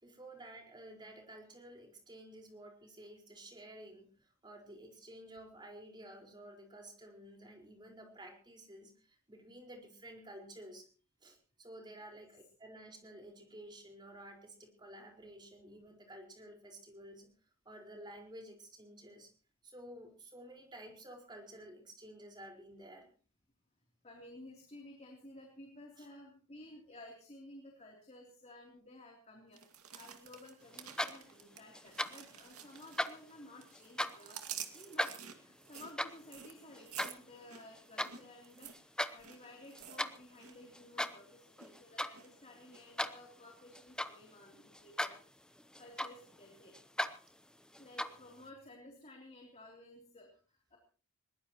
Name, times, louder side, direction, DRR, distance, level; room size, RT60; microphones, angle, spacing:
voice 1, 0.0-4.1 4.4-8.9 9.3-10.9 11.2-17.3 17.6-19.3 19.6-23.1 26.0-26.1, right 1 dB, 20° right, 2 dB, 4.8 m, -52 dB
voice 2, 24.0-29.6 29.9-45.2 45.8-46.8 47.8-50.8, left 1 dB, 30° left, 0 dB, 3.3 m, -55 dB
sound 1, 29.5-33.3 33.6-40.6 40.8-41.2 41.6-42.3 42.7-42.8, right 9 dB, 70° right, 2.3 m, -50 dB
sound 2, 30.7-31.4 31.7-32.3 32.7-34.3 34.7-38.1 38.6-39.1 39.5-40.2 40.7-41.3 41.6-42.2 42.5-44.3 44.7-45.3 45.6-46.4 46.7-47.2 47.7-48.3, left 1 dB, 5° left, 0.8 m, -38 dB
21.5 x 20.0 x 3.1 m, 0.39 s
head